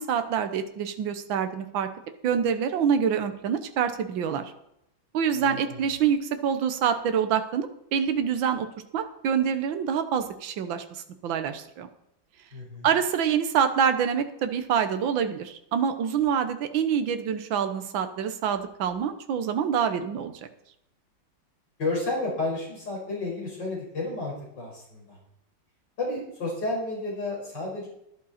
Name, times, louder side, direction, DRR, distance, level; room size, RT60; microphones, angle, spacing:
voice 1, 0.0-1.9 2.2-4.5 5.1-8.7 8.9-11.9 12.8-20.3, right 7 dB, 85° right, 9 dB, 1.7 m, -26 dB
voice 2, 5.3-5.8 12.5-12.9 21.8-25.2 26.0-27.9, left 2 dB, 65° left, -3 dB, 6.0 m, -31 dB
12.5 x 11.5 x 4.3 m, 0.78 s
omnidirectional pair, 2.1 m